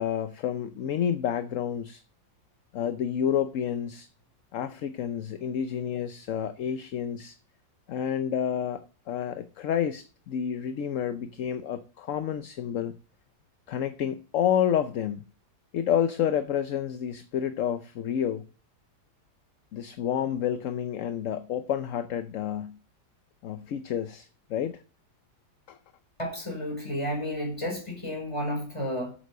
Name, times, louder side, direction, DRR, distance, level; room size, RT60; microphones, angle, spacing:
voice 1, 0.0-2.0 2.7-4.1 4.5-7.3 7.9-12.9 13.7-15.2 15.7-18.4 19.7-22.8 23.4-24.8 25.7-25.8, left 9 dB, 60° left, 0.9 m, -29 dB
voice 2, 26.2-29.1, equal, 15° left, 4.6 m, -32 dB
8.4 x 7.5 x 6.6 m
omnidirectional pair, 1.8 m